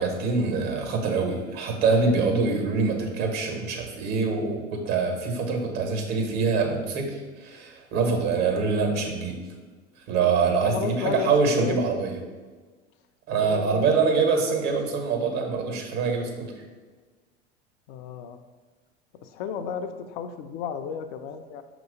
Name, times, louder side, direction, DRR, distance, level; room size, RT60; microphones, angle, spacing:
voice 1, 0.0-9.3 10.1-12.2 13.3-16.5, right 4 dB, 60° right, 3 dB, 1.5 m, -24 dB
voice 2, 10.4-11.3 11.6-11.8 13.3-14.0 17.9-18.4 19.2-21.6, left 7 dB, 60° left, 7 dB, 0.5 m, -33 dB
6.1 x 2.9 x 5.3 m, 1.4 s
hypercardioid pair, 85°, 34 cm